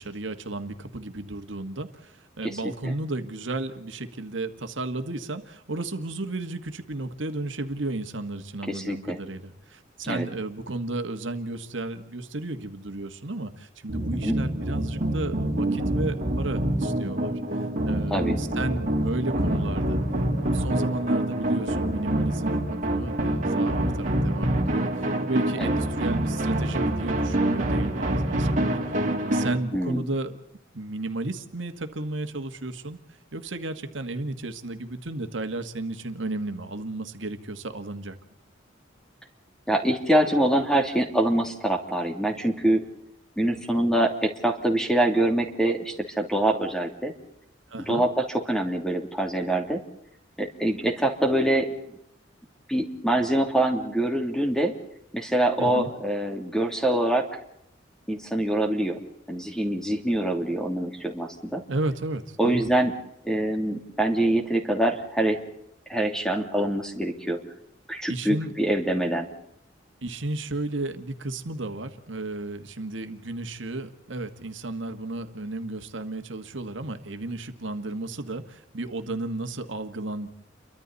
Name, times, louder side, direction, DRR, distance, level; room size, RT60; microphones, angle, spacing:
voice 1, 0.0-20.0 20.5-28.8 29.3-30.4 30.7-33.0 33.3-38.2 47.7-48.0 55.6-55.9 61.7-62.7 68.1-68.5 70.0-80.3, right 2 dB, 75° right, 7 dB, 1.6 m, -33 dB
voice 2, 8.7-9.2 10.0-10.3 14.2-14.4 18.1-18.4 25.6-25.7 29.7-30.0 39.7-42.8 43.4-47.1 47.9-49.8 50.4-51.7 52.7-54.7 55.1-57.2 58.1-59.0 59.3-61.6 62.4-62.9 63.2-65.4 65.9-67.4 67.9-69.3, right 1 dB, 5° left, 3 dB, 2.9 m, -24 dB
sound 1, 13.9-29.6, right 1 dB, 45° right, 3.5 m, -26 dB
30.0 x 24.0 x 4.1 m, 0.75 s
head